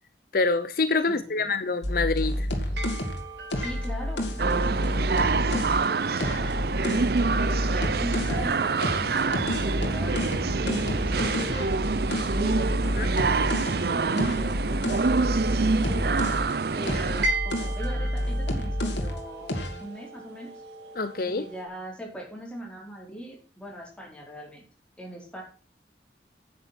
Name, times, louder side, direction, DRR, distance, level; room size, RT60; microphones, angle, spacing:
voice 1, 0.3-2.5 13.0-13.1 21.0-21.4, left 3 dB, 55° left, 12 dB, 0.7 m, -26 dB
voice 2, 1.1-1.5 3.6-6.5 7.0-11.8 12.3-16.1 16.7-20.5 21.2-24.6 25.0-25.4, right 1 dB, 5° left, -1 dB, 4.2 m, -40 dB
sound 1, 1.8-5.8 6.2-8.5 8.8-16.5 16.8-19.2 19.5-19.8, left 1 dB, 85° left, 2.6 m, -29 dB
sound 2, 2.2-21.7, right 2 dB, 75° right, 2.5 m, -40 dB
sound 3, 4.4-17.3, right 4 dB, 60° right, 0.6 m, -26 dB
9.4 x 9.1 x 6.0 m, 0.38 s
head